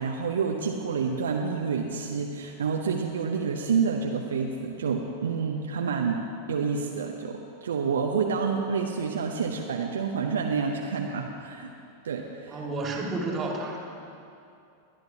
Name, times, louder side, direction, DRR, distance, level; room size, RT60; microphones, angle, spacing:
voice 1, 0.0-6.2 6.5-11.7 12.0-12.6, right 5 dB, 65° right, 1 dB, 0.8 m, -28 dB
voice 2, 12.5-13.8, right 2 dB, 25° right, 0 dB, 2.0 m, -31 dB
22.5 x 10.5 x 2.8 m, 2.6 s
figure-of-eight pair, 90°, 0 cm